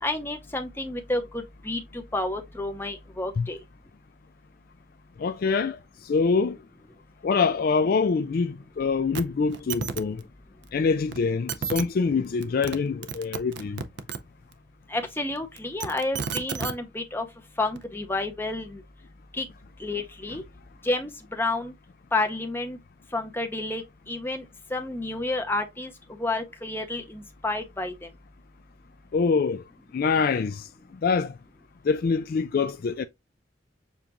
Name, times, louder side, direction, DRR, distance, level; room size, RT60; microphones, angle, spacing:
voice 1, 0.0-3.6 14.9-17.3 17.6-18.8 19.3-19.5 19.8-20.4 20.8-21.7 22.1-22.8 23.1-24.4 24.7-25.9 26.2-28.1, left 2 dB, 10° left, 0.7 m, -30 dB
voice 2, 5.2-6.6 7.2-10.2 10.7-13.8 29.1-29.6 29.9-30.7 31.0-31.3 31.8-33.1, left 5 dB, 50° left, 0.3 m, -25 dB
sound 1, 9.1-9.2 9.5-10.0 11.1-11.2 11.5-11.8 12.4-12.8 13.0-14.2 15.6-16.7 17.8-17.9, right 6 dB, 60° right, 0.5 m, -31 dB
7.0 x 2.5 x 2.8 m
head